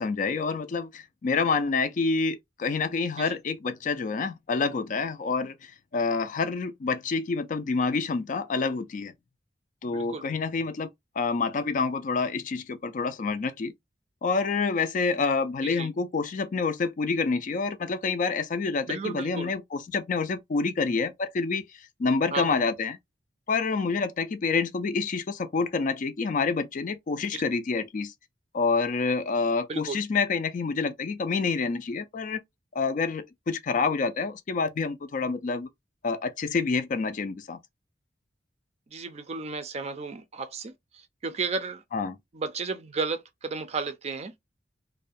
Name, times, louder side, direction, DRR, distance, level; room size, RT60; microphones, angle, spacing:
voice 1, 0.0-9.1 9.8-10.9 11.2-13.7 14.2-23.0 23.5-28.1 28.5-32.4 32.7-35.7 36.0-37.6 41.9-42.2, left 4 dB, 45° left, 0.4 m, -28 dB
voice 2, 9.9-10.3 15.6-15.9 18.9-19.5 22.3-22.6 27.3-27.4 29.7-30.0 38.9-41.8 42.3-44.3, right 4 dB, 35° right, 0.4 m, -33 dB
2.4 x 2.1 x 2.5 m
head